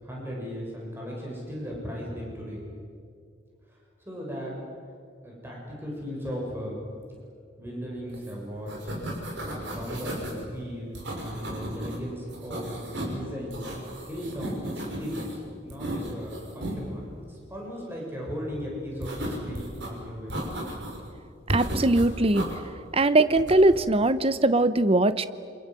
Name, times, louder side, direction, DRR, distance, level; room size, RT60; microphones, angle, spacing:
voice 1, 0.0-2.7 4.1-4.6 5.2-6.8 7.6-8.9 9.4-13.6 14.1-15.3 15.6-20.3, equal, 10° right, -3 dB, 7.2 m, -37 dB
sound 1, 8.1-8.3 8.6-10.4 11.0-12.0 12.3-13.2 13.5-15.4 15.7-16.8 19.0-19.9 20.3-21.1 21.5-22.5 23.4-23.8, right 1 dB, 70° right, 6.3 m, -34 dB
voice 2, 21.5-22.4 22.9-25.3, right 2 dB, 30° right, 13 dB, 0.9 m, -21 dB
28.5 x 26.5 x 7.7 m, 2.3 s
head